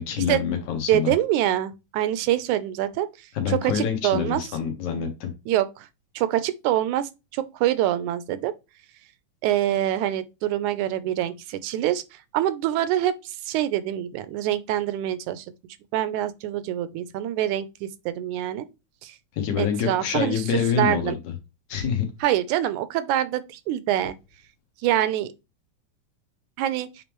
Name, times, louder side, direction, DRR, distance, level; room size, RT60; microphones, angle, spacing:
voice 1, 0.0-1.1 3.4-5.3 19.3-21.3 21.7-22.1, left 7 dB, 80° left, 2.9 m, -26 dB
voice 2, 0.9-3.1 3.5-4.4 5.5-5.9 6.2-8.5 9.4-15.5 15.9-18.7 19.0-19.2 19.6-20.4 20.8-21.2 22.2-24.2 24.8-25.3 26.6-26.9, right 12 dB, 90° right, 2.1 m, -25 dB
8.4 x 3.6 x 3.1 m
omnidirectional pair, 3.4 m